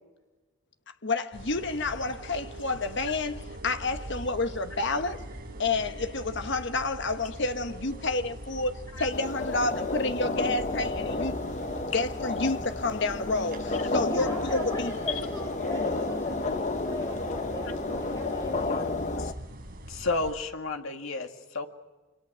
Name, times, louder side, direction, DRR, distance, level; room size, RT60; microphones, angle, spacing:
voice 1, 1.0-5.2 5.6-11.4 11.9-14.9, left 3 dB, 55° left, 1.2 m, -29 dB
sound 1, 1.3-20.3, right 1 dB, 45° right, 4.9 m, -42 dB
sound 2, 9.1-19.3, left 3 dB, 35° left, 0.9 m, -31 dB
voice 2, 14.0-18.8, equal, 15° left, 5.6 m, -37 dB
voice 3, 19.9-21.7, left 3 dB, 70° left, 2.2 m, -32 dB
26.5 x 26.0 x 6.3 m
head